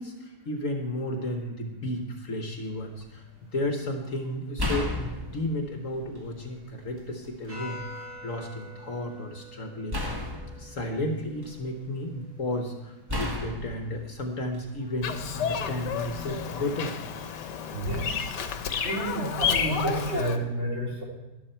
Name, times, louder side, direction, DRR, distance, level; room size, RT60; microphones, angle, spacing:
voice 1, 0.0-10.3 10.6-17.0, left 1 dB, 50° left, 4 dB, 1.4 m, -33 dB
sound 1, 2.4-19.4, equal, 80° right, 5.2 m, -50 dB
sound 2, 2.7-3.0 4.6-6.4 6.9-7.8 9.9-11.9 13.1-15.0 16.0-16.3, left 1 dB, 15° right, 1.2 m, -34 dB
Bird vocalization bird call bird song, 15.0-20.4, left 7 dB, 80° left, 1.5 m, -30 dB
voice 2, 17.7-18.2 18.8-21.0, right 2 dB, 40° right, -3 dB, 3.2 m, -30 dB
12.5 x 11.5 x 4.4 m, 1.1 s
omnidirectional pair, 1.8 m